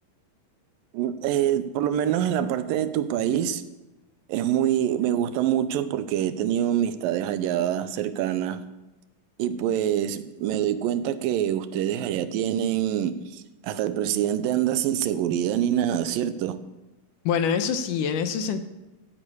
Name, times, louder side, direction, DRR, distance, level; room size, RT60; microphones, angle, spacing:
voice 1, 0.9-3.6 4.3-8.6 9.4-16.6, right 10 dB, 80° right, 2.5 m, -25 dB
voice 2, 17.3-18.6, left 7 dB, 75° left, 2.3 m, -25 dB
15.0 x 8.7 x 8.4 m
omnidirectional pair, 4.0 m